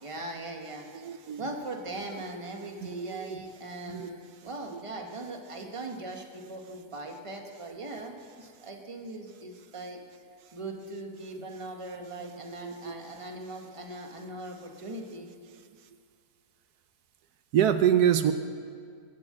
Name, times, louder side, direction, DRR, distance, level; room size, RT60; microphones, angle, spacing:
voice 1, 0.0-0.8 1.4-10.0 10.5-15.3, right 2 dB, 20° right, 2 dB, 1.4 m, -40 dB
voice 2, 0.9-1.4 2.8-3.3 3.9-4.1 12.5-13.0 17.5-18.3, right 9 dB, 80° right, 10 dB, 1.2 m, -25 dB
21.0 x 7.6 x 7.7 m, 2.1 s
omnidirectional pair, 1.7 m